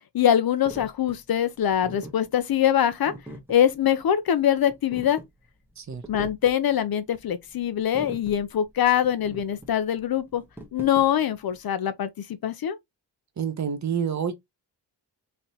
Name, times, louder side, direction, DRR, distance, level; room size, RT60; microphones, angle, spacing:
voice 1, 0.1-3.1 3.5-5.2 6.1-10.4 10.7-12.1 12.4-12.8, left 10 dB, 60° left, 0.7 m, -23 dB
sound 1, 0.6-11.6, right 1 dB, 5° right, 0.9 m, -44 dB
voice 2, 5.8-6.3 13.4-14.3, right 7 dB, 40° right, 0.8 m, -29 dB
3.9 x 3.3 x 2.8 m
wide cardioid pair, 145°, 42 cm